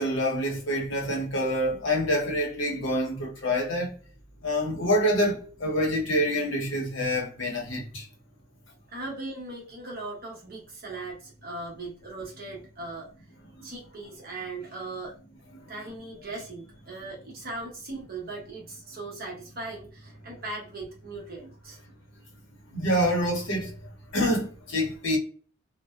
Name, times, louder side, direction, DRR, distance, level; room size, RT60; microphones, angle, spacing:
voice 1, 0.0-3.9 4.4-8.1 13.6-13.7 15.5-15.7 22.7-23.8 24.1-25.2, equal, 65° left, 0.8 m, -26 dB
voice 2, 8.9-13.1 13.6-15.2 15.7-21.8, right 2 dB, 45° right, 1.0 m, -39 dB
2.5 x 2.1 x 2.3 m
head